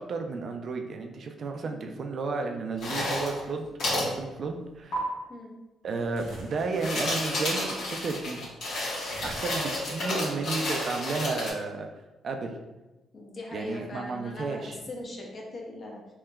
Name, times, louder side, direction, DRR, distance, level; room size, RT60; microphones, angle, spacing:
voice 1, 0.0-3.7 4.0-5.0 5.8-8.5 9.2-11.9 12.2-12.6 13.5-14.8, right 4 dB, 55° right, 4 dB, 0.3 m, -32 dB
voice 2, 1.6-1.9 5.3-5.5 13.1-16.1, left 1 dB, 45° left, -1 dB, 0.7 m, -40 dB
sound 1, 2.8-3.4 3.8-4.1 4.9-5.0 6.6-11.5, left 1 dB, 70° left, 1.3 m, -31 dB
sound 2, 6.2-6.8 9.1-10.0, right 1 dB, 80° right, 0.8 m, -43 dB
3.3 x 2.8 x 2.2 m, 1.1 s
cardioid pair, 90°, 0 cm